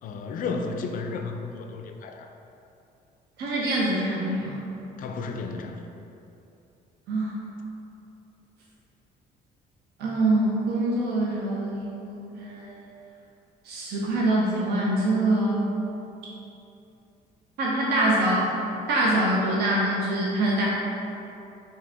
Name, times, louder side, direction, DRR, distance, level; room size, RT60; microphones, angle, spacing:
voice 1, 0.0-2.3 5.0-5.9, left 4 dB, 55° left, 5 dB, 0.4 m, -33 dB
voice 2, 3.4-4.6 7.1-7.4 10.0-12.8 13.6-15.7 17.6-18.6 18.9-20.7, right 1 dB, 70° right, -4 dB, 0.7 m, -24 dB
4.6 x 2.8 x 3.4 m, 2.7 s
cardioid pair, 110°, 17 cm